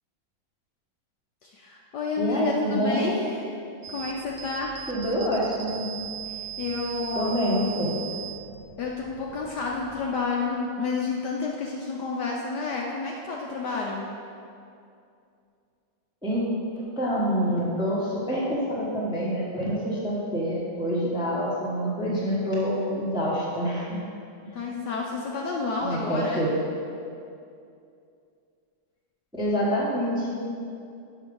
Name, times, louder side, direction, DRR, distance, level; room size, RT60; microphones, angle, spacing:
voice 1, 1.4-3.5 3.9-4.7 6.3-7.3 8.8-14.1 24.5-26.5, left 4 dB, 70° left, -2 dB, 1.0 m, -30 dB
voice 2, 2.2-3.2 4.9-5.9 7.1-8.0 16.2-16.4 16.7-24.0 25.8-26.6 29.3-30.4, equal, 5° right, -6 dB, 0.7 m, -26 dB
sound 1, 3.8-10.2, right 10 dB, 85° right, 1.5 m, -39 dB
6.0 x 5.5 x 5.3 m, 2.5 s
omnidirectional pair, 2.3 m